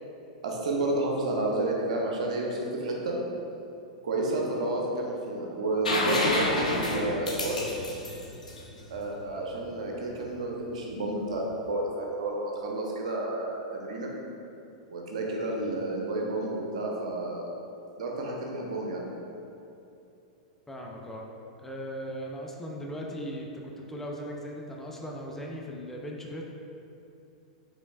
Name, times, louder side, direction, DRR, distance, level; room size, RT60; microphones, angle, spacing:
voice 1, 0.4-3.2 4.0-7.6 8.9-14.1 14.9-17.5 18.0-19.1, right 2 dB, 70° right, -1 dB, 0.7 m, -30 dB
sound 1, 5.8-9.5 11.4-11.5, left 2 dB, 90° left, 0.6 m, -29 dB
voice 2, 20.7-21.2 21.6-26.4, equal, 10° left, -1 dB, 0.4 m, -38 dB
5.0 x 3.2 x 2.4 m, 2.7 s
hypercardioid pair, 105°, 4 cm